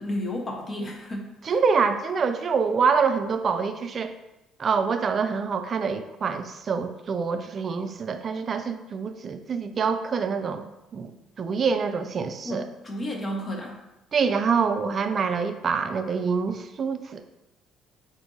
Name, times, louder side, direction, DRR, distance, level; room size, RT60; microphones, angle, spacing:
voice 1, 0.0-1.5 12.4-13.8, left 1 dB, 35° left, 1 dB, 1.0 m, -32 dB
voice 2, 1.4-4.1 4.6-10.7 10.9-11.1 11.4-12.7 14.1-17.2, right 5 dB, 45° right, 9 dB, 0.4 m, -26 dB
4.4 x 2.6 x 3.9 m, 0.95 s
supercardioid pair, 65°, 0 cm